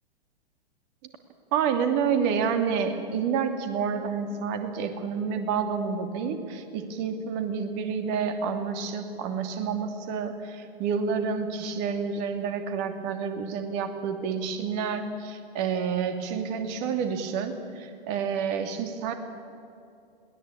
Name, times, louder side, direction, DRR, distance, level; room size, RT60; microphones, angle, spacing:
voice 1, 1.5-19.1, right 6 dB, 45° right, 6 dB, 2.7 m, -29 dB
22.0 x 18.0 x 8.6 m, 2.6 s
hypercardioid pair, 110°, 30 cm